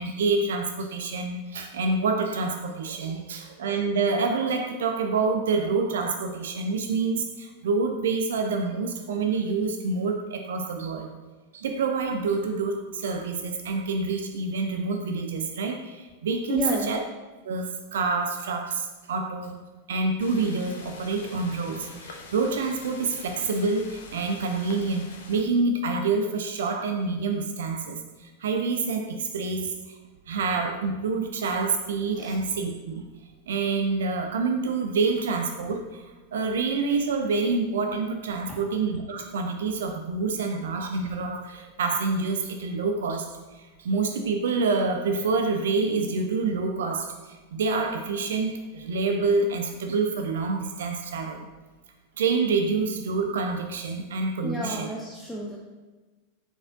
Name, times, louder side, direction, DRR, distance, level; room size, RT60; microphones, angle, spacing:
voice 1, 0.0-11.1 11.5-16.6 16.9-17.0 17.4-19.6 19.9-30.0 30.3-33.0 33.5-36.1 36.3-43.3 43.5-51.5 52.2-54.9, right 4 dB, 60° right, 5 dB, 0.4 m, -27 dB
voice 2, 16.5-17.0 32.2-32.4 38.5-38.6 54.4-55.6, equal, 5° left, -3 dB, 0.5 m, -31 dB
sound 1, 20.2-25.4, left 4 dB, 60° left, 0.5 m, -45 dB
4.4 x 4.1 x 2.6 m, 1.3 s
figure-of-eight pair, 90°, 0 cm